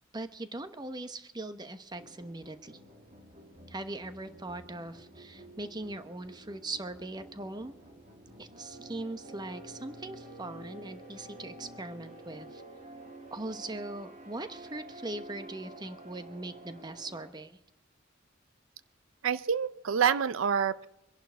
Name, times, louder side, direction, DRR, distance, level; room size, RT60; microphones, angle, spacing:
voice 1, 0.1-2.8 3.7-7.7 8.4-12.6 13.3-17.6, right 2 dB, 20° right, 10 dB, 1.0 m, -40 dB
sound 1, 1.9-17.3, right 1 dB, 40° right, 2.6 m, -50 dB
voice 2, 19.2-20.9, right 7 dB, 80° right, 16 dB, 0.5 m, -27 dB
24.5 x 11.0 x 4.6 m, 0.89 s
head